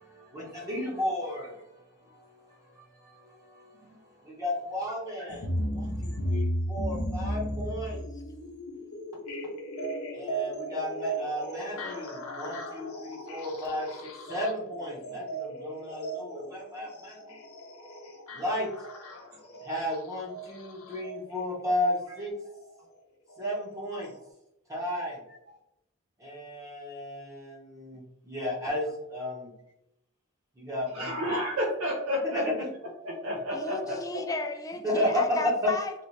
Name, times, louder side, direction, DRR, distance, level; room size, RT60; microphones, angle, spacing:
voice 1, 0.0-1.7 2.1-3.7 4.0-8.0 10.1-13.9 14.3-17.4 18.3-18.7 19.6-22.3 23.4-24.1 24.7-25.2 26.2-29.5 30.6-31.4 32.3-32.7 33.8-33.9 34.8-35.7, left 1 dB, 15° right, -3 dB, 0.8 m, -33 dB
sound 1, 5.3-21.2 22.4-22.5 23.3-23.4 24.0-24.1, right 1 dB, 85° left, 0.7 m, -35 dB
voice 2, 30.9-32.4 33.0-34.2, equal, 70° right, -3 dB, 0.8 m, -31 dB
voice 3, 33.5-36.0, left 2 dB, 15° left, 5 dB, 0.3 m, -34 dB
3.0 x 2.9 x 3.1 m, 0.85 s
head